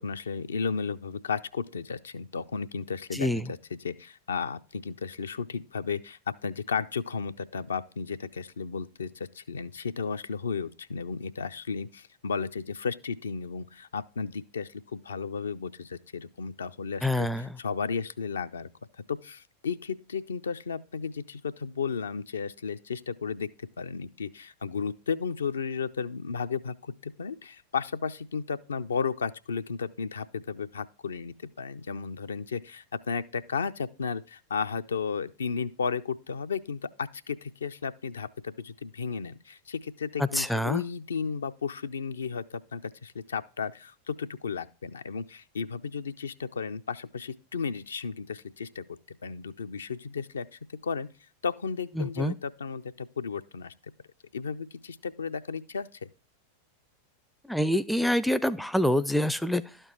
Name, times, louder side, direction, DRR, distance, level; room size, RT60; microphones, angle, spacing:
voice 1, 0.0-3.3 3.8-18.7 19.1-23.5 23.8-51.1 51.4-53.7 54.3-56.1, left 5 dB, 70° left, 0.4 m, -34 dB
voice 2, 3.1-3.5 17.0-17.6 40.2-40.8 52.0-52.3 57.4-59.8, left 1 dB, ahead, 0.4 m, -26 dB
12.0 x 4.5 x 4.4 m
figure-of-eight pair, 90°, 0 cm